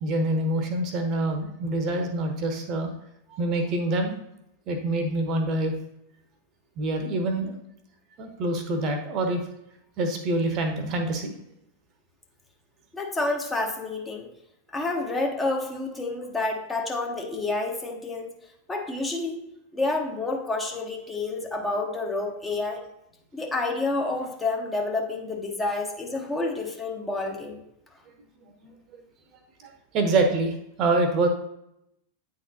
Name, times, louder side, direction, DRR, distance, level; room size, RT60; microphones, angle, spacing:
voice 1, 0.0-2.9 3.3-4.1 4.7-5.7 6.8-7.5 8.2-9.4 10.0-11.3 28.6-28.7 29.6-31.3, right 2 dB, 40° right, 5 dB, 0.9 m, -26 dB
voice 2, 12.9-14.3 14.7-18.3 18.7-19.4 19.7-22.8 23.3-27.6, left 2 dB, 10° left, 1 dB, 0.9 m, -29 dB
9.0 x 3.9 x 2.7 m, 0.80 s
figure-of-eight pair, 90°, 0 cm